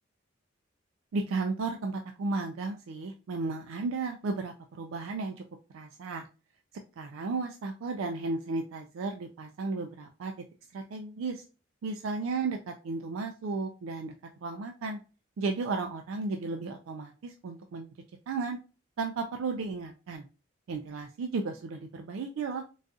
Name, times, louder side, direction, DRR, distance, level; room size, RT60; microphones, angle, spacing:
voice 1, 1.1-5.4 5.7-6.3 7.0-10.3 10.7-11.4 11.8-14.1 14.4-15.0 15.4-17.9 18.3-18.6 19.0-20.2 20.7-22.6, right 3 dB, 85° right, 4 dB, 0.3 m, -34 dB
3.9 x 2.4 x 2.4 m, 0.34 s
head